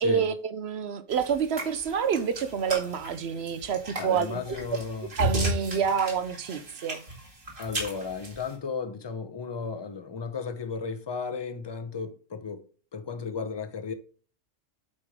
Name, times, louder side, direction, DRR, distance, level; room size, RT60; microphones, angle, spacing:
voice 1, 0.0-4.6 5.1-7.0, right 7 dB, 60° right, 0.9 m, -28 dB
sound 1, 1.1-8.5, right 1 dB, 45° right, 2.2 m, -34 dB
voice 2, 4.0-5.1 7.6-12.6 12.9-13.9, left 5 dB, 25° left, 0.6 m, -34 dB
8.6 x 4.9 x 3.6 m
omnidirectional pair, 1.3 m